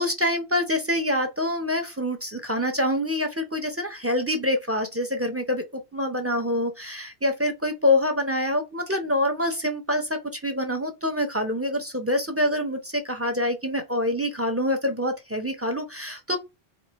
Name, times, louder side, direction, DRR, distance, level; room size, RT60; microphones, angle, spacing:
voice 1, 0.0-16.4, left 1 dB, 15° right, 0.5 m, -26 dB
4.4 x 2.4 x 3.0 m
omnidirectional pair, 1.2 m